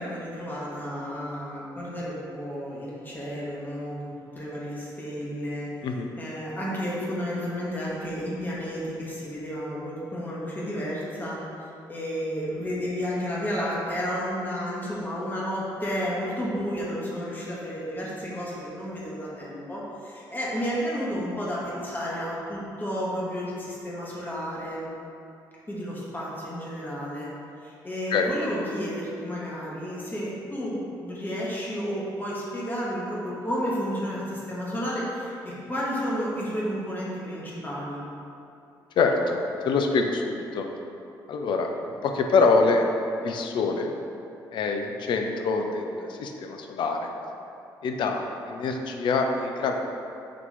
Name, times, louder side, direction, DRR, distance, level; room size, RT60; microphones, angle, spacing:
voice 1, 0.0-4.1 4.3-5.7 6.2-24.9 25.7-27.3 27.6-38.0, equal, 15° left, -6 dB, 1.0 m, -32 dB
voice 2, 39.0-40.7 41.3-41.7 42.0-42.9 43.2-43.9 44.5-47.1 47.8-49.8, left 4 dB, 45° left, 3 dB, 0.4 m, -25 dB
4.0 x 2.9 x 3.2 m, 2.7 s
figure-of-eight pair, 45°, 11 cm